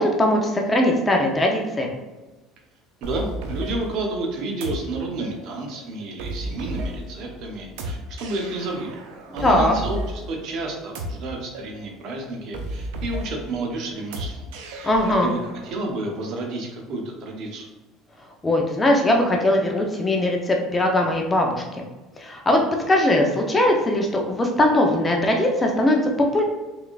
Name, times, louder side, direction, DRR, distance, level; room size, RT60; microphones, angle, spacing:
voice 1, 0.0-1.9 9.4-9.8 14.8-15.3 18.4-21.6 22.2-26.4, left 1 dB, 20° left, 1 dB, 0.6 m, -20 dB
voice 2, 3.0-9.0 9.3-14.5 15.2-17.7, right 2 dB, 60° right, 1 dB, 0.8 m, -30 dB
sound 1, 3.0-15.7, right 1 dB, 85° right, 0.5 m, -34 dB
3.6 x 3.4 x 2.4 m, 1.1 s
supercardioid pair, 115°, 0 cm